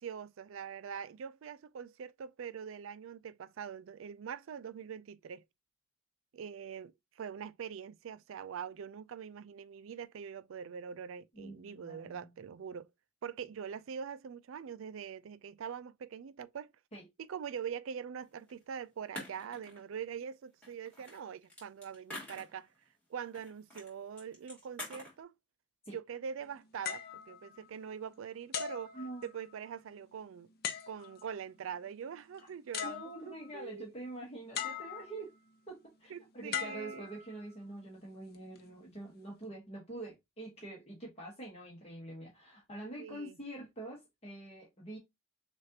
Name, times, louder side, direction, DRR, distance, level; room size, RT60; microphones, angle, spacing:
voice 1, 0.0-5.4 6.3-12.9 13.2-16.7 17.2-22.7 23.1-25.3 25.9-30.5 30.9-33.9 36.1-37.1 43.0-43.4, right 7 dB, 75° right, 0.4 m, -43 dB
voice 2, 11.3-12.3 16.9-17.1 25.8-26.0 28.9-29.3 32.8-35.3 35.7-45.0, right 2 dB, 30° left, 1.3 m, -46 dB
sound 1, 18.5-18.6 19.2-20.0 20.6-22.8 23.3-23.9 24.2-25.2, left 1 dB, 5° left, 2.4 m, -46 dB
sound 2, 26.8-28.0 28.5-29.7 30.6-31.3 32.4-32.5 32.7-33.6 34.5-35.3 36.5-37.6 38.3-38.6, left 8 dB, 50° left, 0.7 m, -40 dB
6.3 x 2.5 x 2.8 m
head